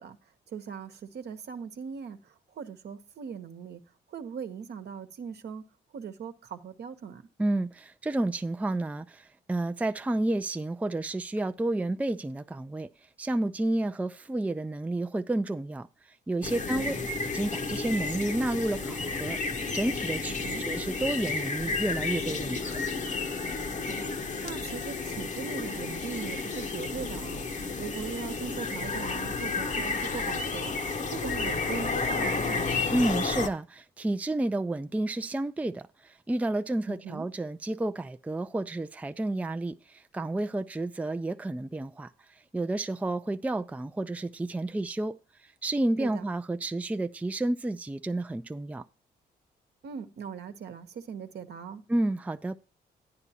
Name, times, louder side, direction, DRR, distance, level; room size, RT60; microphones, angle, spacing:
voice 1, 0.0-3.8 4.1-5.7 5.9-7.2 16.7-17.0 20.3-20.7 23.8-32.9 36.9-37.3 46.0-46.3 49.8-51.8, right 7 dB, 65° right, 1.0 m, -40 dB
voice 2, 7.4-12.9 13.2-15.9 16.3-16.9 17.3-19.4 19.7-20.3 20.6-22.8 32.9-45.2 45.4-48.9 51.9-52.6, right 2 dB, 10° right, 0.4 m, -30 dB
sound 1, 16.4-33.5, left 4 dB, 40° left, 0.9 m, -32 dB
9.8 x 9.6 x 2.8 m
supercardioid pair, 60°, 18 cm